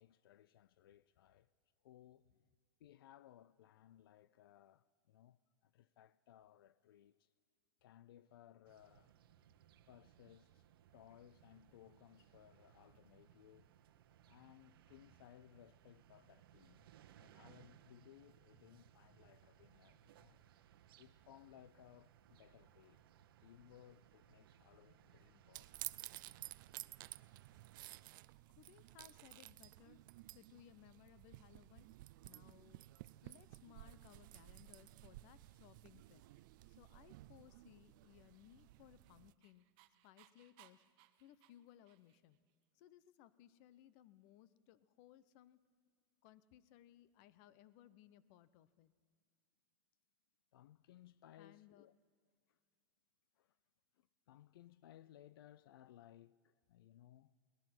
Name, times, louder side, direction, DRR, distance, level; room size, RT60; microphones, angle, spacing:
voice 1, 0.0-1.5 1.8-2.3 2.8-7.3 7.8-9.2 9.9-10.6 10.9-13.7 14.2-16.9 17.2-20.4 21.0-23.0 23.4-25.9 50.5-51.9 52.5-52.6 53.4-53.6 53.9-57.3, left 12 dB, 90° left, 0.5 m, -63 dB
sound 1, 8.6-28.0, right 11 dB, 85° right, 1.1 m, -66 dB
sound 2, 25.5-39.3, right 18 dB, 65° right, 0.5 m, -54 dB
voice 2, 28.5-30.0 30.3-31.9 32.2-32.8 33.2-36.2 36.7-39.6 40.0-40.8 41.2-42.4 42.7-45.6 46.2-48.9 51.4-51.9, left 12 dB, 50° left, 0.9 m, -63 dB
Dog, 38.5-42.4, right 16 dB, 45° right, 1.0 m, -68 dB
23.0 x 19.0 x 6.1 m
supercardioid pair, 150°, 12 cm